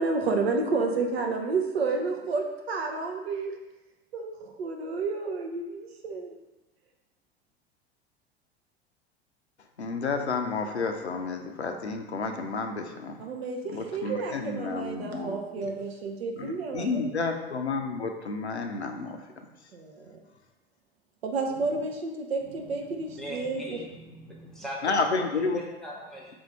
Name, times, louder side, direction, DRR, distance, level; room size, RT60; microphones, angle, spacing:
voice 1, 0.0-3.5 4.1-6.3 13.2-17.0 19.7-20.2 21.2-23.8, right 3 dB, 70° right, 2 dB, 0.7 m, -30 dB
voice 2, 9.8-13.2 13.7-15.7 16.4-19.2 24.8-25.6, left 4 dB, 85° left, 5 dB, 0.5 m, -31 dB
voice 3, 22.4-26.3, equal, ahead, -3 dB, 0.9 m, -41 dB
3.7 x 2.6 x 4.5 m, 1.1 s
figure-of-eight pair, 80°, 32 cm